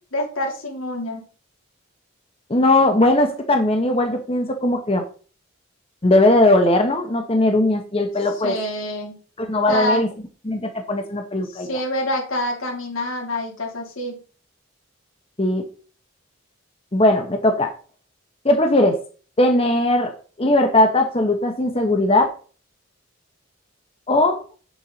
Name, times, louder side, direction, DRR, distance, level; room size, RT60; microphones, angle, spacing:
voice 1, 0.1-1.2 8.4-9.2 9.7-10.1 11.5-14.2, left 1 dB, 85° left, 0 dB, 3.1 m, -26 dB
voice 2, 2.5-5.0 6.0-8.6 9.4-10.1 10.4-11.7 15.4-15.6 16.9-17.7 18.4-19.0 19.4-20.1 20.4-22.3 24.1-24.4, left 1 dB, 30° left, 5 dB, 0.9 m, -18 dB
8.0 x 7.2 x 3.9 m, 0.38 s
head